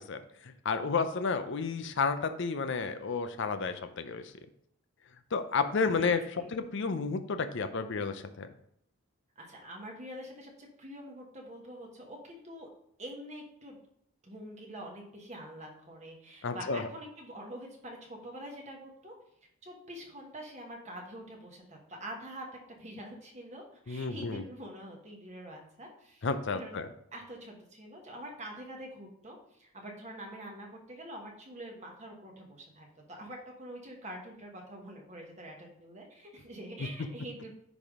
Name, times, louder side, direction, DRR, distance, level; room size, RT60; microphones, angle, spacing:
voice 1, 0.1-4.2 5.3-6.2 6.5-8.5 16.4-16.9 23.9-24.4 26.2-26.9, left 4 dB, 55° left, 9 dB, 0.5 m, -31 dB
voice 2, 6.0-6.5 9.4-12.7 13.0-13.8 14.2-19.1 19.6-22.5 22.8-26.8 27.1-37.5, right 1 dB, 30° right, 0 dB, 1.3 m, -45 dB
10.0 x 3.5 x 3.6 m, 0.71 s
head